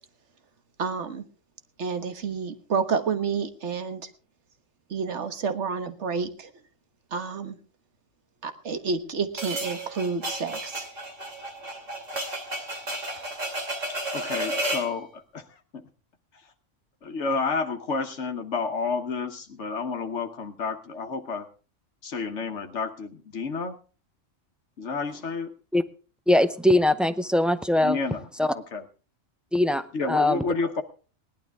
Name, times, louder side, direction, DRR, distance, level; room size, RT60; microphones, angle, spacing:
voice 1, 0.8-1.2 1.8-4.0 4.9-6.5 7.1-7.6 8.4-10.8, right 5 dB, 65° right, 9 dB, 1.6 m, -29 dB
sound 1, 9.4-14.9, right 1 dB, 90° right, 3.3 m, -32 dB
voice 2, 14.1-15.4 17.0-21.5 22.0-23.8 24.8-25.5 27.8-28.2 28.5-28.8 29.9-30.8, left 4 dB, 70° left, 6 dB, 1.3 m, -30 dB
voice 3, 26.3-28.0 28.4-28.5 29.5-30.4, left 1 dB, ahead, 10 dB, 0.4 m, -22 dB
19.0 x 12.0 x 3.5 m, 0.36 s
omnidirectional pair, 1.3 m